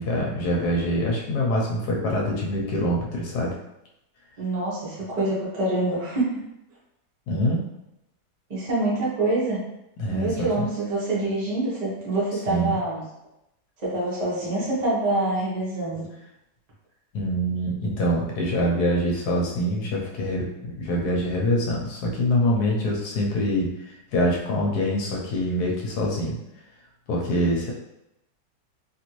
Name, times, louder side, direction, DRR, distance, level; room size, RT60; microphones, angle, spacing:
voice 1, 0.0-3.5 7.3-7.7 10.0-10.5 12.5-12.8 17.1-26.4 27.1-27.7, equal, 75° left, -2 dB, 1.1 m, -25 dB
voice 2, 4.4-6.3 8.5-9.6 10.1-13.0 13.8-16.1, right 2 dB, 30° right, -8 dB, 0.8 m, -26 dB
2.9 x 2.5 x 3.0 m, 0.86 s
omnidirectional pair, 1.8 m